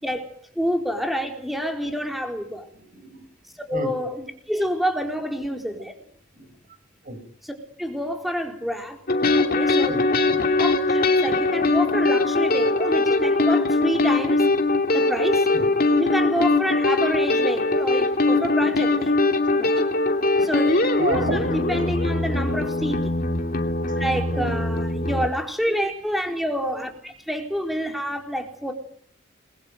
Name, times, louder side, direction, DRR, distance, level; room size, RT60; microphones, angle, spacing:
voice 1, 0.0-2.7 3.7-5.9 7.4-9.0 9.5-10.0 10.6-14.5 14.9-15.5 16.0-19.1 19.5-19.9 20.4-20.8 21.1-23.1 23.9-28.7, equal, ahead, 3 dB, 4.3 m, -28 dB
voice 2, 2.8-3.3 3.7-3.9 6.3-6.5 7.0-7.2 9.9-10.6 15.5-15.7 18.3-18.5 21.0-21.4 24.3-24.6, right 2 dB, 40° right, 9 dB, 7.2 m, -31 dB
sound 1, 9.1-25.3, left 2 dB, 45° left, 2.8 m, -21 dB
28.5 x 22.5 x 9.3 m, 0.64 s
head